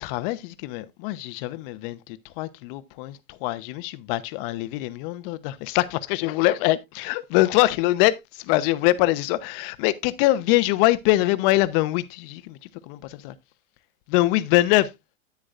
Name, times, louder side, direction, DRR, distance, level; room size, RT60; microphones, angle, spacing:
voice 1, 0.0-2.0 2.4-12.6 12.9-13.3 14.1-14.9, left 17 dB, 45° left, 0.9 m, -23 dB
9.9 x 9.6 x 2.5 m
hypercardioid pair, 125°, 39 cm